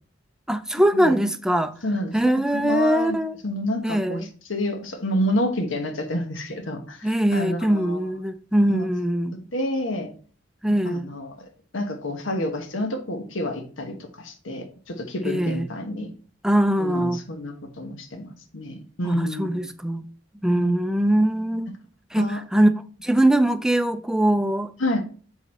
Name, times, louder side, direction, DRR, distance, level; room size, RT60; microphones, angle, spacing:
voice 1, 0.5-1.7 2.1-3.4 3.8-4.3 7.0-9.4 10.6-11.1 15.2-15.7 16.4-17.2 19.0-20.0 20.4-21.7 22.1-22.7 23.0-24.7, right 1 dB, 5° right, 0.4 m, -22 dB
voice 2, 1.8-2.1 2.5-3.2 3.4-4.2 4.5-8.0 8.7-8.9 9.3-10.1 10.9-11.5 11.7-16.1 16.8-19.7 20.6-20.8 22.2-22.4 24.8-25.0, left 1 dB, 85° left, 1.2 m, -29 dB
7.2 x 4.0 x 4.2 m
head